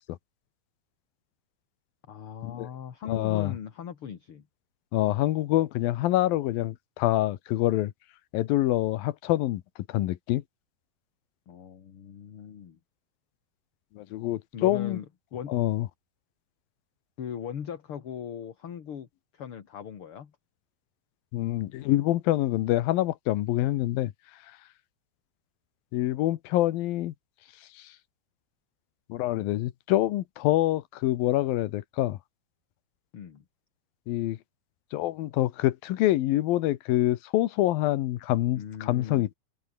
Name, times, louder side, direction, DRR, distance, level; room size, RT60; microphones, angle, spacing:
voice 1, 2.1-4.4 11.5-12.8 14.5-15.1 15.3-15.5 17.2-19.1 19.3-20.3 33.1-33.4 38.6-39.3, left 8 dB, 45° left, 2.3 m, -39 dB
voice 2, 3.1-3.6 4.9-7.9 8.3-9.6 9.9-10.4 13.9-15.0 15.5-15.9 21.3-24.1 25.9-27.1 27.7-27.9 29.1-32.2 34.1-34.4 34.9-39.3, left 15 dB, 80° left, 2.9 m, -26 dB
omnidirectional pair, 4.2 m